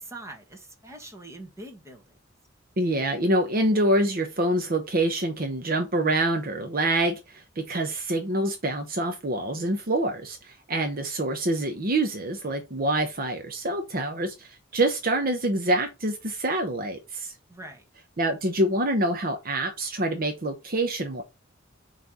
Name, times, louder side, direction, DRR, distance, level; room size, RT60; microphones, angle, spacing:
voice 1, 0.0-2.2 17.5-17.9, right 2 dB, 15° right, 1.6 m, -43 dB
voice 2, 2.8-17.3 18.2-21.2, right 1 dB, 45° right, 0.9 m, -26 dB
5.7 x 3.3 x 5.4 m
head